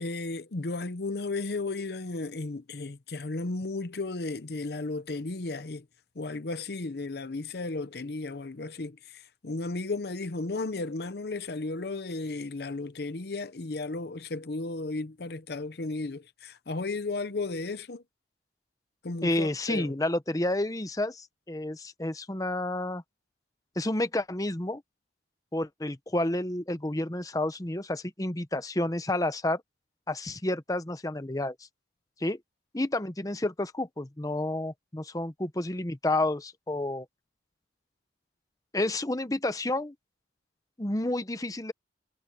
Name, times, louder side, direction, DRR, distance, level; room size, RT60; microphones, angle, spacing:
voice 1, 0.0-5.8 6.2-18.0 19.0-19.9, left 3 dB, 60° left, 0.8 m, -34 dB
voice 2, 19.2-23.0 23.8-24.8 25.5-29.6 30.1-31.6 32.2-32.4 32.7-37.1 38.7-39.9 40.8-41.7, left 1 dB, 20° left, 0.9 m, -30 dB
head